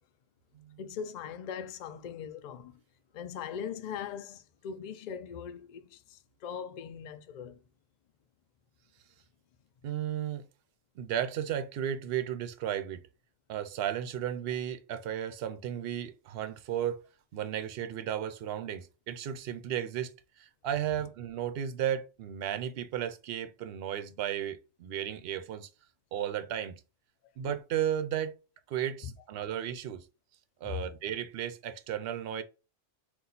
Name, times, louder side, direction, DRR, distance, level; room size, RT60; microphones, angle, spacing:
voice 1, 0.8-2.8 3.1-7.6 29.0-29.1 30.6-30.8, left 8 dB, 65° left, 0.4 m, -40 dB
voice 2, 9.8-10.5 11.0-13.0 13.5-17.0 17.3-25.7 26.1-26.8 27.4-28.3 28.7-30.1 30.6-32.4, right 10 dB, 60° right, 0.7 m, -34 dB
3.9 x 2.4 x 4.2 m
omnidirectional pair, 1.3 m